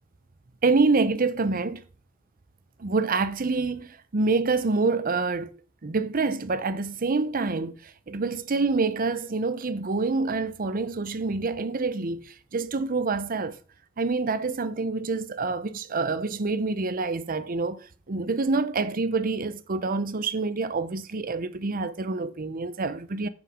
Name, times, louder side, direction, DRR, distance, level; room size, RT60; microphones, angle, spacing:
voice 1, 0.6-1.8 2.8-5.5 5.8-13.6 14.0-17.8 18.1-23.3, right 3 dB, 45° right, 0.7 m, -27 dB
7.2 x 6.3 x 4.8 m
head